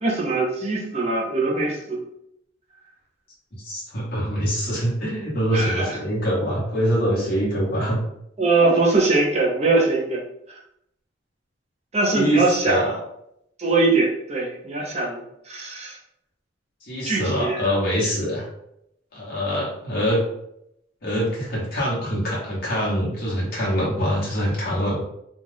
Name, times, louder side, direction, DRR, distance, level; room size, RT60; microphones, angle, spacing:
voice 1, 0.0-2.0 5.5-6.0 8.4-10.2 11.9-13.0 13.6-16.0 17.0-17.7, right 3 dB, 35° right, -2 dB, 0.6 m, -22 dB
voice 2, 3.5-8.0 8.6-8.7 12.1-13.0 16.8-18.4 19.1-20.2 21.0-25.0, equal, 55° left, -5 dB, 1.0 m, -24 dB
2.4 x 2.2 x 3.2 m, 0.78 s
head